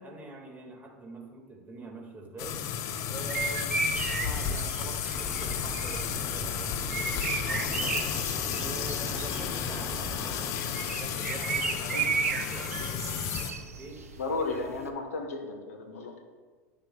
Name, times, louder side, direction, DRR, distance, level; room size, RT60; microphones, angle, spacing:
voice 1, 0.0-2.6 3.1-8.1 8.5-14.0, right 2 dB, 20° right, 1 dB, 1.7 m, -45 dB
sound 1, 2.4-13.5, left 8 dB, 45° left, 0.6 m, -33 dB
sound 2, 3.2-14.9, right 5 dB, 75° right, 0.6 m, -35 dB
sound 3, 5.1-10.5, right 1 dB, 5° right, 0.3 m, -43 dB
voice 2, 14.2-16.2, left 3 dB, 70° left, 4 dB, 1.0 m, -34 dB
11.5 x 7.1 x 2.2 m, 1.5 s
figure-of-eight pair, 80°, 8 cm